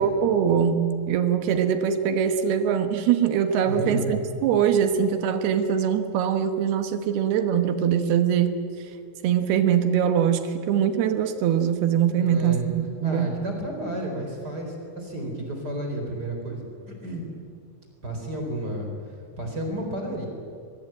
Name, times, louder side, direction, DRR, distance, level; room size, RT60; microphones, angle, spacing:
voice 1, 0.0-8.5 9.2-13.3, right 8 dB, 70° right, 8 dB, 3.0 m, -22 dB
voice 2, 3.7-4.2 12.1-12.6 13.0-17.3 18.0-18.9 19.4-20.3, right 1 dB, 25° right, 2 dB, 4.3 m, -31 dB
22.5 x 22.5 x 9.1 m, 2.3 s
omnidirectional pair, 4.9 m